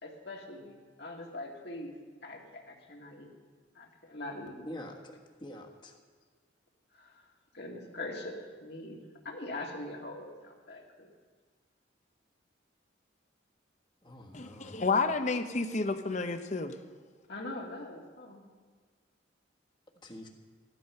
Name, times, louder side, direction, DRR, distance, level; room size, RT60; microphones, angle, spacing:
voice 1, 0.0-2.0 2.2-3.3 3.7-4.7 6.9-7.2 7.5-8.3 8.6-11.1 17.3-18.4, left 2 dB, 60° left, 0 dB, 2.1 m, -42 dB
voice 2, 5.4-5.9 14.0-14.8 20.0-20.3, left 1 dB, 25° left, 1 dB, 1.5 m, -45 dB
voice 3, 14.3-16.8, left 3 dB, 40° left, 9 dB, 0.8 m, -30 dB
14.5 x 12.0 x 5.6 m, 1.5 s
head